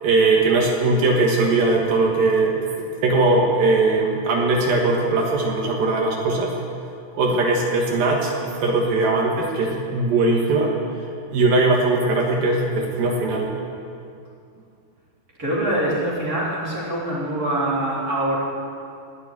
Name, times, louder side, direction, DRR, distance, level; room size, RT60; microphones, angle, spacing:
voice 1, 0.0-6.5 7.1-8.3 8.6-10.7 11.3-13.5, right 3 dB, 70° right, 0 dB, 3.1 m, -20 dB
voice 2, 15.4-18.4, right 1 dB, 25° right, -7 dB, 3.7 m, -24 dB
19.0 x 6.9 x 9.3 m, 2.4 s
omnidirectional pair, 4.5 m